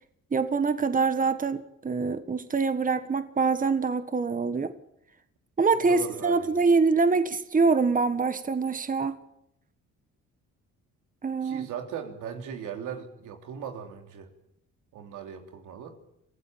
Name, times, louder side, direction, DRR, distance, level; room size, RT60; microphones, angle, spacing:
voice 1, 0.3-4.7 5.6-9.2 11.2-11.7, right 4 dB, 25° right, 11 dB, 1.5 m, -25 dB
voice 2, 5.9-6.6 11.4-14.3 14.9-16.0, right 8 dB, 90° right, 5 dB, 3.2 m, -38 dB
25.0 x 15.5 x 9.0 m, 0.79 s
cardioid pair, 90°, 30 cm